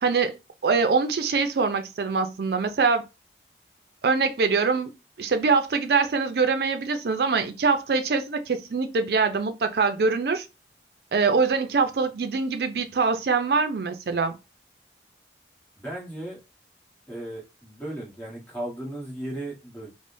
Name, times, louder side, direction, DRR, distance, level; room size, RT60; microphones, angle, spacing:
voice 1, 0.0-0.4 0.6-3.0 4.0-10.5 11.1-14.4, right 4 dB, 60° right, 0.4 m, -24 dB
voice 2, 15.8-16.4 17.1-19.9, right 1 dB, 10° left, 1.1 m, -36 dB
3.4 x 2.0 x 2.6 m
head